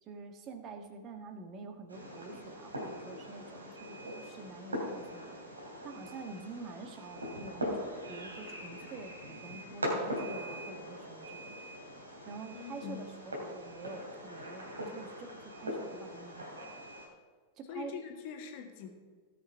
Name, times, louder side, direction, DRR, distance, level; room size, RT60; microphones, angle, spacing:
voice 1, 0.0-5.4 5.8-11.6 12.3-16.8 17.6-17.9, right 4 dB, 35° right, 7 dB, 1.5 m, -47 dB
Fireworks, 1.9-17.1, equal, 75° right, 3.0 m, -41 dB
voice 2, 12.5-13.0 17.7-18.9, left 8 dB, 45° left, 2 dB, 1.9 m, -43 dB
17.5 x 6.3 x 4.6 m, 1.5 s
figure-of-eight pair, 90°, 0 cm